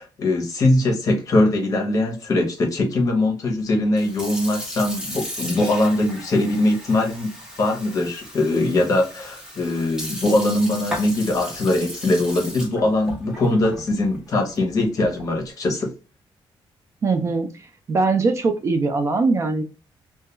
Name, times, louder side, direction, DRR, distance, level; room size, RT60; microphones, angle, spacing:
voice 1, 0.0-7.3 7.6-15.9, left 2 dB, 40° left, 0.8 m, -21 dB
Sink (filling or washing) / Fill (with liquid), 3.8-15.4, equal, 5° right, 0.7 m, -36 dB
voice 2, 17.0-19.6, right 3 dB, 35° right, 0.3 m, -21 dB
2.2 x 2.2 x 2.9 m
wide cardioid pair, 165°, 9 cm